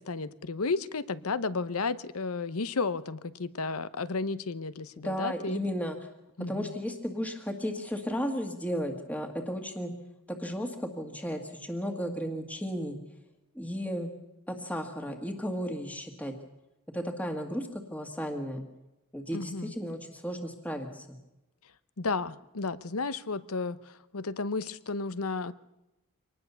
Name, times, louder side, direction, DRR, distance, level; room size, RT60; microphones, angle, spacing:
voice 1, 0.0-5.6 6.4-6.7 19.3-19.7 22.0-23.8 24.1-25.5, left 4 dB, 80° left, 15 dB, 0.9 m, -33 dB
voice 2, 5.0-6.0 6.5-9.9 10.3-13.0 13.5-14.1 14.5-16.3 16.9-18.6 19.1-21.1, equal, 5° left, 4 dB, 1.7 m, -34 dB
25.0 x 19.5 x 6.9 m, 0.95 s
head